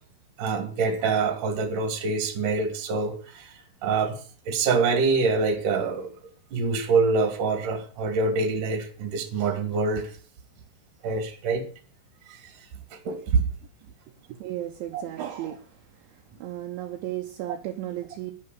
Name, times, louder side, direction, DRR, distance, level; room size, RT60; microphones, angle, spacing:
voice 1, 0.4-4.2 4.5-6.1 6.5-10.1 11.0-11.6 12.3-12.5 13.0-13.5 14.9-15.0, right 4 dB, 45° right, 6 dB, 3.4 m, -25 dB
voice 2, 14.1-15.8 16.4-18.3, right 13 dB, 75° right, 3 dB, 3.2 m, -34 dB
11.0 x 10.5 x 8.6 m, 0.42 s
omnidirectional pair, 6.0 m